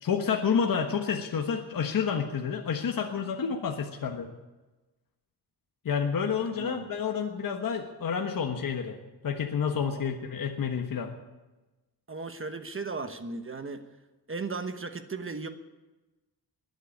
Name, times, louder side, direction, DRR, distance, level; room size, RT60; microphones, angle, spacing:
voice 1, 0.0-4.3 5.8-9.0 9.2-11.1, left 6 dB, 55° left, 3 dB, 1.4 m, -29 dB
voice 2, 6.5-7.0 12.1-13.8 14.3-15.5, right 4 dB, 30° right, 8 dB, 1.1 m, -36 dB
21.0 x 8.1 x 8.5 m, 1.1 s
wide cardioid pair, 135°, 40 cm